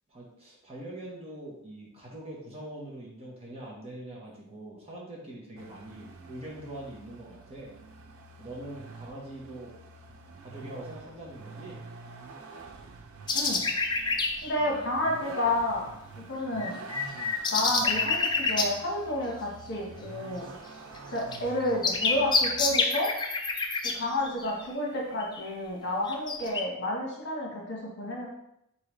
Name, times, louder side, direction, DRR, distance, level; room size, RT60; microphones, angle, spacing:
voice 1, 0.1-7.7 8.4-9.7 10.4-11.8 14.5-14.8, right 1 dB, 30° right, -5 dB, 1.1 m, -43 dB
Vehicle, 5.6-22.8, right 4 dB, 65° right, 0.5 m, -47 dB
voice 2, 13.3-13.6 14.4-15.9 16.1-16.8 17.5-20.5 21.1-23.1 23.8-28.3, left 1 dB, 55° left, -2 dB, 1.1 m, -30 dB
sound 1, 13.3-14.5 16.6-18.7 21.0-21.1 21.3-24.6 25.2-25.4 26.1-26.6, left 4 dB, 20° left, 0.3 m, -27 dB
4.0 x 3.7 x 3.1 m, 0.79 s
head